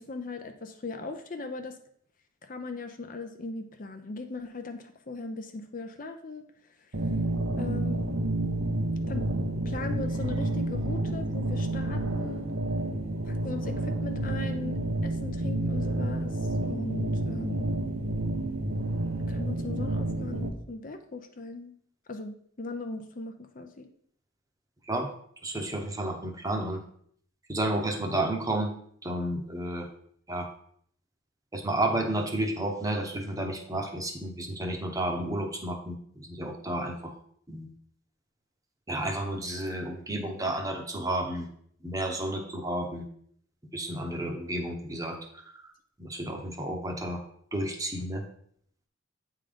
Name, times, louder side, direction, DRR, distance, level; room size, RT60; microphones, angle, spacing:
voice 1, 0.0-1.8 2.4-6.4 7.6-8.1 9.1-9.3 9.6-12.5 13.2-17.7 19.2-21.7 22.1-23.9, left 3 dB, 40° left, 6 dB, 0.6 m, -39 dB
sound 1, 6.9-20.5, right 1 dB, 75° right, 0.8 m, -30 dB
voice 2, 25.4-26.8 27.5-28.7 29.0-29.9 30.3-30.5 31.5-37.1 37.5-37.7 38.9-41.5 41.8-43.0 43.7-45.6 46.0-47.2 47.5-48.2, right 1 dB, 15° right, 3 dB, 0.9 m, -31 dB
8.8 x 3.7 x 5.1 m, 0.63 s
head